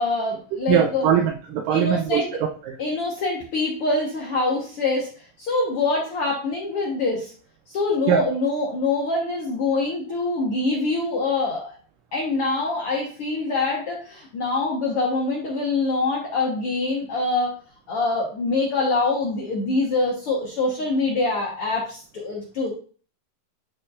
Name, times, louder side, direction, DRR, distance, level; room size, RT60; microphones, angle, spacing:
voice 1, 0.0-1.0 1.7-2.3 2.8-5.1 5.4-7.3 7.7-11.7 12.1-17.5 17.9-22.7, left 3 dB, 60° left, -3 dB, 1.5 m, -24 dB
voice 2, 0.7-2.8 8.1-8.3, right 9 dB, 80° right, 3 dB, 2.2 m, -21 dB
11.0 x 4.5 x 2.5 m, 0.40 s
omnidirectional pair, 4.1 m